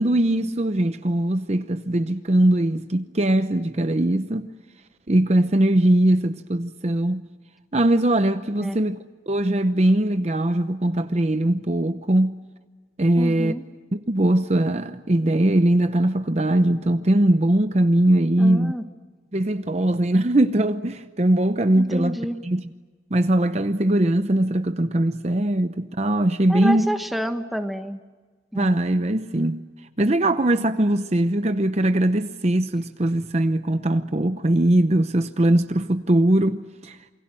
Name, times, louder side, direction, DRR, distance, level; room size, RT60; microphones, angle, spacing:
voice 1, 0.0-4.5 5.1-7.2 7.7-9.0 9.3-12.4 13.0-13.5 13.9-18.7 19.3-22.2 22.4-22.6 23.1-26.9 28.5-29.6 30.0-37.0, right 1 dB, 35° right, 0.8 m, -21 dB
voice 2, 13.2-13.6 18.4-18.8 21.7-22.4 26.5-28.0 28.5-28.8, equal, ahead, 1.3 m, -29 dB
28.0 x 24.0 x 7.6 m
head